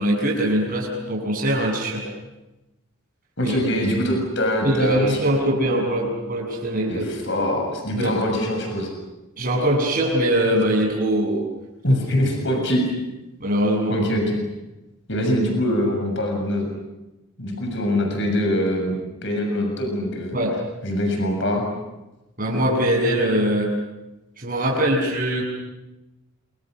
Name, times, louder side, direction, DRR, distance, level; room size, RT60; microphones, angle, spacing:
voice 1, 0.0-2.1 3.4-3.6 4.6-7.1 7.9-8.1 9.4-11.4 11.9-12.0 13.4-14.0 20.3-20.6 22.4-23.7 24.4-25.4, right 1 dB, 40° right, -2 dB, 7.5 m, -22 dB
voice 2, 3.4-5.2 6.9-8.9 11.8-12.9 13.9-14.4 15.1-16.6 17.4-20.3 20.8-21.6, equal, 55° left, 3 dB, 6.9 m, -23 dB
28.5 x 27.5 x 6.4 m, 0.99 s
head